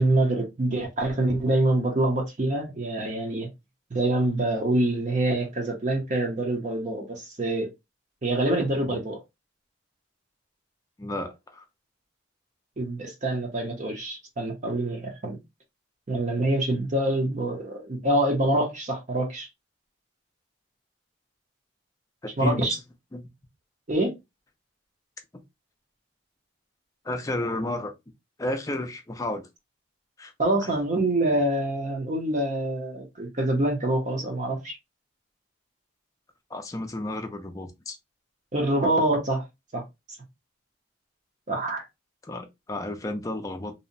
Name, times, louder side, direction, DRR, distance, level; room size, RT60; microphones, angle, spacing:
voice 1, 0.0-3.5 3.9-7.7 8.2-9.2 12.8-15.4 16.1-19.5 22.4-22.8 23.9-24.1 30.4-34.8 38.5-39.4 39.7-39.8 41.5-41.8, right 1 dB, 40° right, 0.6 m, -25 dB
voice 2, 11.0-11.6 22.2-22.8 23.1-23.2 25.3-25.4 27.0-27.9 28.4-29.5 30.2-30.3 30.6-30.7 36.5-38.0 42.2-43.7, left 1 dB, 15° left, 0.4 m, -32 dB
2.7 x 2.1 x 2.5 m
head